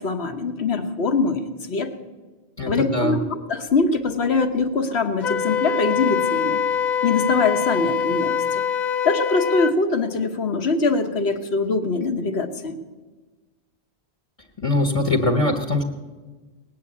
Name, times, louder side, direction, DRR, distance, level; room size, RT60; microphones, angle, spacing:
voice 1, 0.0-1.9 2.6-3.2 3.5-6.6 7.0-8.4 9.0-12.8, left 4 dB, 75° left, 7 dB, 1.4 m, -23 dB
voice 2, 2.6-3.2 14.6-15.8, left 2 dB, 30° left, 1 dB, 1.2 m, -22 dB
Wind instrument woodwind instrument, 5.2-9.8, left 7 dB, 50° left, 0.7 m, -24 dB
19.0 x 7.7 x 8.5 m, 1.3 s
omnidirectional pair, 1.1 m